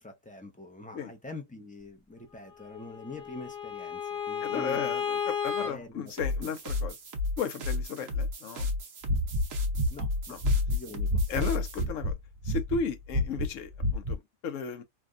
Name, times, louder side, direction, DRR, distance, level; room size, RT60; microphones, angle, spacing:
voice 1, 0.0-4.9 5.6-6.1 6.4-6.5 9.9-10.4 10.7-11.2, left 2 dB, 10° left, 0.4 m, -44 dB
Bowed string instrument, 2.6-5.7, left 7 dB, 25° left, 1.1 m, -33 dB
voice 2, 4.4-6.9 7.4-8.7 10.3-10.4 11.3-12.1 12.4-14.8, left 6 dB, 70° left, 1.0 m, -35 dB
sound 1, 6.1-11.8, left 3 dB, 70° right, 1.2 m, -33 dB
sound 2, 9.0-11.5 11.8-12.2 12.4-12.8 13.1-13.5 13.8-14.2, left 1 dB, 40° right, 1.5 m, -28 dB
3.3 x 2.3 x 2.5 m
omnidirectional pair, 1.5 m